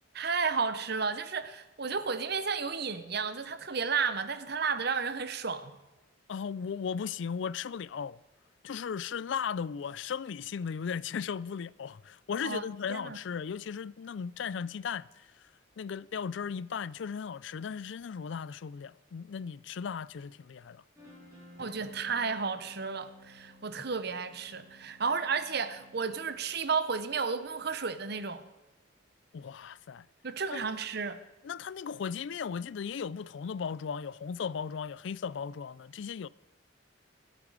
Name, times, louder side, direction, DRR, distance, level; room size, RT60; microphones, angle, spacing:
voice 1, 0.1-5.8 12.4-12.6 12.9-13.2 21.6-28.4 30.2-31.2, right 5 dB, 55° right, 1.0 m, -32 dB
voice 2, 6.3-8.2 8.6-15.3 15.8-20.8 29.3-30.1 30.5-30.6 31.4-36.3, left 6 dB, 65° left, 0.4 m, -36 dB
sound 1, 21.0-26.9, left 1 dB, 15° right, 5.8 m, -55 dB
26.0 x 8.7 x 4.9 m
head